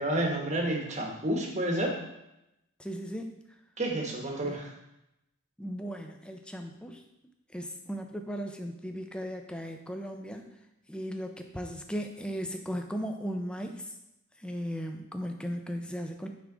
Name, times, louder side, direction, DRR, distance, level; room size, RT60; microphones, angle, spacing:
voice 1, 0.0-2.0 3.8-4.7, right 1 dB, 30° right, 0 dB, 1.1 m, -30 dB
voice 2, 2.8-3.3 4.4-4.6 5.6-7.0 7.5-10.5 10.9-14.0 14.4-16.3, equal, 5° left, 4 dB, 0.5 m, -37 dB
9.4 x 3.6 x 3.8 m, 0.89 s
head